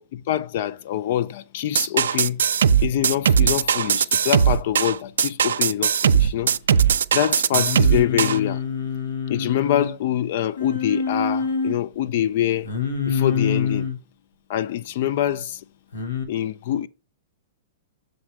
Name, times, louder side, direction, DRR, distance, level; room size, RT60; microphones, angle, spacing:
voice 1, 0.0-2.4 2.8-6.5 7.1-8.6 9.3-12.7 13.1-13.9 14.5-15.6 16.3-16.9, left 11 dB, 60° left, 0.4 m, -25 dB
sound 1, 1.8-8.4, right 8 dB, 80° right, 0.3 m, -19 dB
Singing, 7.5-9.9 10.6-11.7 12.6-14.0 15.9-16.2, left 5 dB, 85° left, 1.3 m, -26 dB
6.6 x 4.1 x 4.6 m
hypercardioid pair, 125°, 0 cm